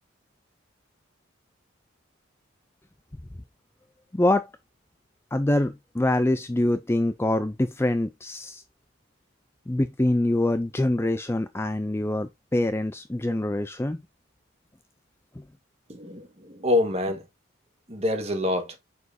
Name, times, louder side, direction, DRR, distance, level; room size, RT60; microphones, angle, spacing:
voice 1, 4.1-4.5 5.3-8.6 9.7-14.0, left 1 dB, 10° left, 0.4 m, -25 dB
voice 2, 15.9-17.2 17.9-18.8, left 2 dB, 30° right, 1.5 m, -26 dB
7.1 x 6.3 x 2.7 m
head